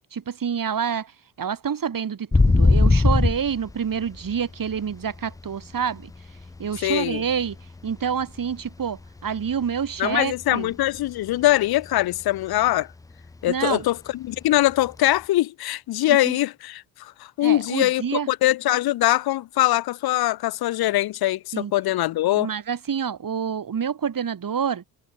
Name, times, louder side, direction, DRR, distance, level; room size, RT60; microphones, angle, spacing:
voice 1, 0.1-1.1 1.4-6.1 6.6-7.5 7.8-10.7 13.5-13.8 16.1-16.4 17.4-18.3 21.5-21.7 22.4-24.8, right 7 dB, 50° right, 5.2 m, -27 dB
sound 1, 2.3-5.6 6.0-8.2 8.5-8.9 9.2-11.1 11.4-11.5 11.8-12.2 12.6-12.7 14.9-15.0, left 3 dB, 10° left, 0.4 m, -21 dB
voice 2, 6.8-7.2 10.0-12.9 13.4-22.5, left 15 dB, 60° left, 0.8 m, -22 dB
hypercardioid pair, 50°, 43 cm